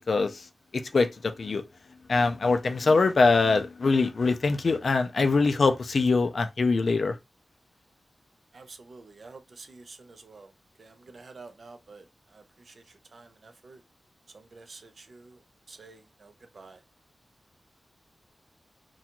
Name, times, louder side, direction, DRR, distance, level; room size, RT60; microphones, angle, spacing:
voice 1, 0.1-0.4 0.7-1.6 2.1-7.2, left 3 dB, 60° left, 0.3 m, -23 dB
voice 2, 8.5-10.5 10.8-13.8 14.3-15.4 15.7-16.8, right 3 dB, 60° right, 0.5 m, -49 dB
2.5 x 2.3 x 2.8 m
wide cardioid pair, 130°, 0 cm